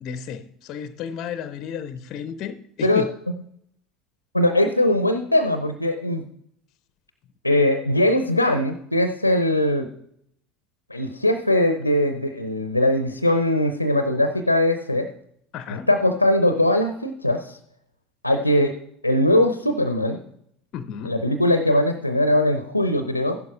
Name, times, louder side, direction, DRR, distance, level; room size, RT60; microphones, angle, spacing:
voice 1, 0.0-3.1 15.5-15.9 20.7-21.2, left 8 dB, 45° left, 0.6 m, -33 dB
voice 2, 4.3-6.2 7.4-9.9 10.9-15.1 15.7-17.6 18.2-18.8 19.0-20.2 21.0-23.4, left 1 dB, 90° left, 0.6 m, -21 dB
15.0 x 11.5 x 2.4 m
figure-of-eight pair, 65°, 0 cm